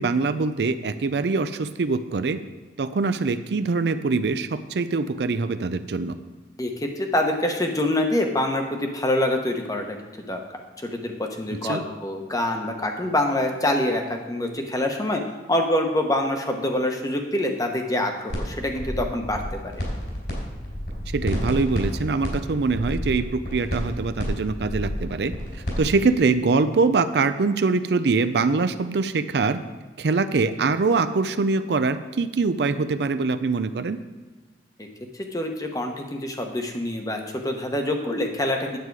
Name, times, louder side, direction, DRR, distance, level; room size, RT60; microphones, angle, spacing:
voice 1, 0.0-2.4 2.8-6.2 11.6-11.8 21.1-29.6 30.0-34.0, right 4 dB, 70° right, 11 dB, 0.5 m, -23 dB
voice 2, 6.6-10.4 10.8-15.2 15.5-19.8 34.8-34.9 35.3-38.8, left 1 dB, 20° left, 3 dB, 1.0 m, -25 dB
sound 1, 18.3-18.4 18.7-20.3 20.6-25.8, equal, 70° left, 3.7 m, -30 dB
9.4 x 8.3 x 4.7 m, 1.3 s
head